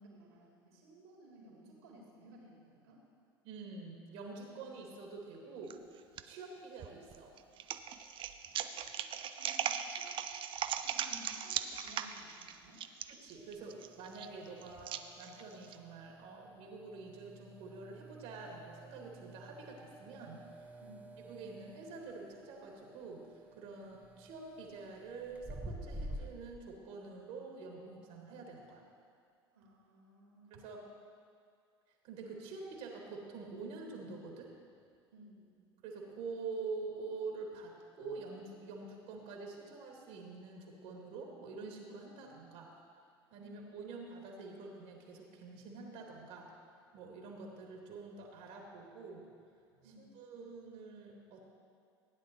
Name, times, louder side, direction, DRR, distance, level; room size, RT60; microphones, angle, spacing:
voice 1, 0.0-3.0 9.4-10.3 10.8-12.8 20.8-21.2 23.8-24.0 29.5-30.7 35.1-35.6 43.4-43.8 49.8-50.3, right 1 dB, 75° right, -3 dB, 3.1 m, -57 dB
voice 2, 3.4-5.8 6.2-7.4 13.1-20.7 21.3-28.8 30.5-30.9 31.9-34.5 35.8-42.7 43.3-46.5 46.9-49.3 49.8-51.5, right 4 dB, 55° right, 0 dB, 2.2 m, -47 dB
sound 1, 5.7-6.2 6.8-15.8, right 9 dB, 40° right, 0.5 m, -39 dB
sound 2, 13.4-26.6, right 1 dB, 10° right, 0.9 m, -51 dB
16.0 x 9.8 x 3.0 m, 2.3 s
figure-of-eight pair, 75°, 13 cm